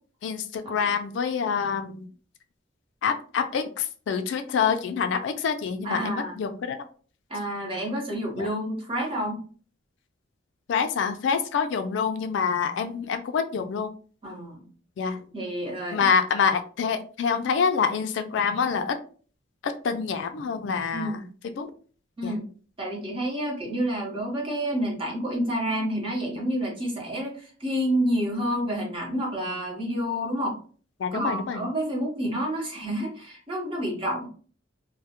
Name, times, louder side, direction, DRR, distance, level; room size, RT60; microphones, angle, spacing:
voice 1, 0.2-2.0 3.0-6.8 8.4-8.5 10.7-13.9 15.0-15.2 15.9-18.9 19.6-21.1 21.6-21.7 22.2-22.3 31.0-31.6, left 6 dB, 65° left, 7 dB, 0.3 m, -26 dB
voice 2, 5.8-6.4 7.3-9.4 14.2-14.7 15.3-16.1 20.9-21.3 22.2-22.5 22.8-30.6 31.1-34.3, equal, 30° right, -2 dB, 0.8 m, -29 dB
2.2 x 2.0 x 2.8 m, 0.41 s
head